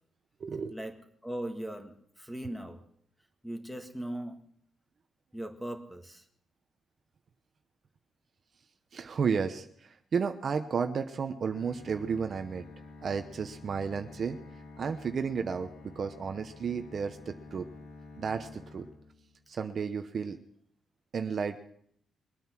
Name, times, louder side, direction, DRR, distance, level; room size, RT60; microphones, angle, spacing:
voice 1, 0.4-0.8 8.9-12.6 13.0-14.4 14.8-17.7 18.2-18.9 19.5-20.4 21.1-21.6, right 6 dB, 45° right, 7 dB, 0.9 m, -32 dB
voice 2, 1.2-2.8 3.4-4.4 5.3-6.2, right 1 dB, ahead, 5 dB, 1.8 m, -39 dB
Bowed string instrument, 11.4-19.6, left 3 dB, 80° left, 3.1 m, -50 dB
22.5 x 9.3 x 6.1 m, 0.67 s
cardioid pair, 140°, 0 cm